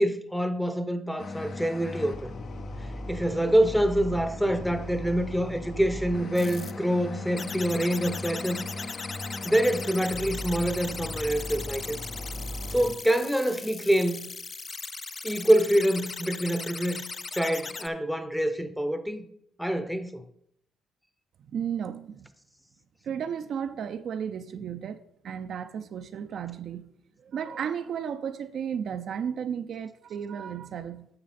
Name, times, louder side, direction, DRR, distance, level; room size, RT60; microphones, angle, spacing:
voice 1, 0.0-2.4 3.1-8.7 9.4-12.0 12.7-14.3 15.2-17.0 17.3-19.3 19.6-20.2, right 1 dB, ahead, 0.7 m, -26 dB
sound 1, 1.2-12.9, left 1 dB, 55° left, 0.8 m, -38 dB
sound 2, 6.3-6.7 7.4-17.9, left 4 dB, 35° left, 0.4 m, -38 dB
voice 2, 21.4-22.3 23.0-26.9 27.2-31.1, right 8 dB, 65° right, 0.5 m, -34 dB
9.5 x 6.1 x 4.2 m
cardioid pair, 90°, 0 cm